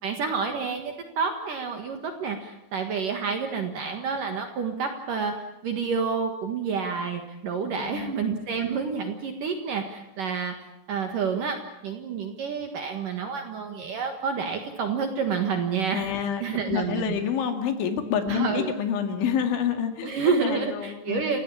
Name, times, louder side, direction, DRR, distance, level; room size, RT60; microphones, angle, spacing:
voice 1, 0.0-5.4 5.6-10.5 10.9-17.2 18.3-18.7 20.0-21.4, right 5 dB, 60° right, 5 dB, 2.5 m, -29 dB
voice 2, 7.6-8.2 15.9-20.1 20.4-21.2, left 8 dB, 70° left, 7 dB, 4.4 m, -28 dB
29.5 x 16.0 x 8.7 m, 0.90 s
omnidirectional pair, 5.6 m